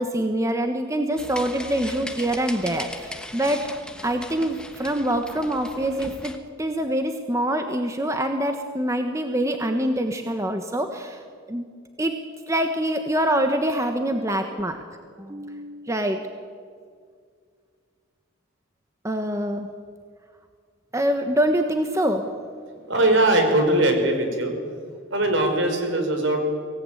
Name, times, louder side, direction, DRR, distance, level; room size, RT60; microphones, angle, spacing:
voice 1, 0.0-3.8 4.0-6.3 6.6-11.2 11.5-11.7 12.0-12.2 12.5-14.8 15.2-16.2 19.0-19.7 20.9-22.3, right 1 dB, 15° right, 5 dB, 1.2 m, -25 dB
sound 1, 1.2-6.4, left 1 dB, 5° left, 1.3 m, -38 dB
voice 2, 22.9-24.5 25.1-26.5, right 1 dB, 65° right, 4 dB, 5.2 m, -20 dB
24.5 x 18.0 x 9.2 m, 2.1 s
head